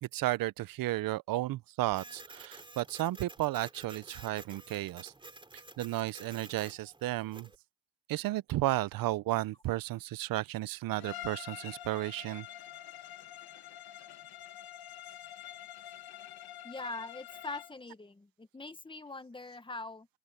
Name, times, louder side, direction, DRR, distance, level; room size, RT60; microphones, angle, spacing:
voice 1, 0.0-5.1 5.8-7.5 8.1-12.5, right 16 dB, 55° right, 0.6 m, -33 dB
Printer, 1.9-7.6, right 2 dB, 10° right, 3.6 m, -51 dB
Bowed string instrument, 11.0-17.8, left 12 dB, 60° left, 1.8 m, -47 dB
voice 2, 16.6-20.1, left 3 dB, 10° left, 1.5 m, -42 dB
open air
cardioid pair, 120°, 41 cm